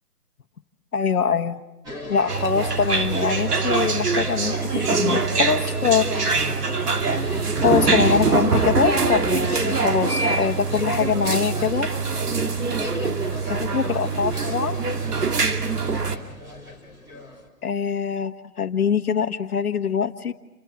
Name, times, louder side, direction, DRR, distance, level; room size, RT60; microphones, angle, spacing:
voice 1, 0.9-1.6 2.1-6.1 7.6-11.9 13.5-14.8 17.6-20.3, left 7 dB, 65° left, 7 dB, 1.5 m, -23 dB
sound 1, 1.8-17.5, left 1 dB, 10° right, 2.7 m, -37 dB
sound 2, 2.3-16.1, right 4 dB, 75° right, 2.5 m, -23 dB
28.5 x 26.5 x 6.2 m, 0.98 s
hypercardioid pair, 155°, 46 cm